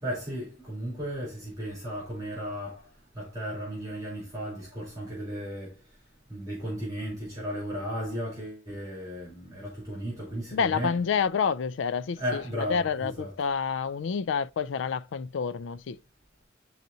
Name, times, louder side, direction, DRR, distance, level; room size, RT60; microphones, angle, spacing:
voice 1, 0.0-2.9 3.1-5.8 6.3-10.9 12.2-13.3, equal, 20° right, 3.1 m, -35 dB
voice 2, 10.5-16.0, left 6 dB, 70° left, 0.4 m, -28 dB
10.5 x 4.0 x 2.7 m
head